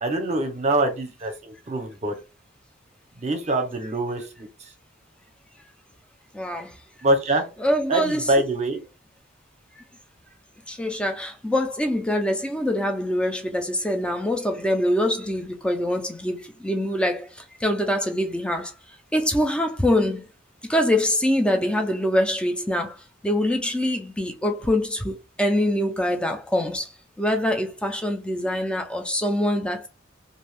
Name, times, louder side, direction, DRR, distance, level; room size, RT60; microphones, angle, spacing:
voice 1, 0.0-2.1 3.2-4.5 7.0-7.4 7.9-8.8, right 1 dB, 35° right, 0.7 m, -24 dB
voice 2, 6.3-6.8 7.6-8.3 9.8-9.9 10.7-18.7 19.1-20.3 20.7-26.9 27.2-29.9, left 1 dB, 5° left, 0.4 m, -24 dB
2.6 x 2.3 x 3.2 m
head